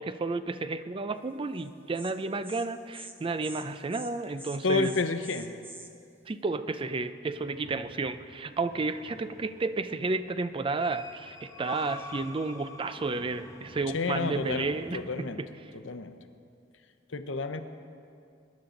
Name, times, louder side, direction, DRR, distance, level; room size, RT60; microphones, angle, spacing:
voice 1, 0.0-4.9 6.3-15.5, right 3 dB, 30° right, 12 dB, 0.4 m, -32 dB
Insect, 1.6-1.7 1.9-2.1 2.4-2.7 2.9-3.1 3.4-3.6 3.9-4.1 4.4-5.9, right 2 dB, 10° right, 0.8 m, -45 dB
voice 2, 4.6-5.5 13.9-15.4 15.8-16.1 17.1-17.6, left 3 dB, 85° left, 8 dB, 0.8 m, -30 dB
sound 1, 7.3-15.2, left 3 dB, 15° left, 0.9 m, -48 dB
22.0 x 10.5 x 3.8 m, 2.4 s
head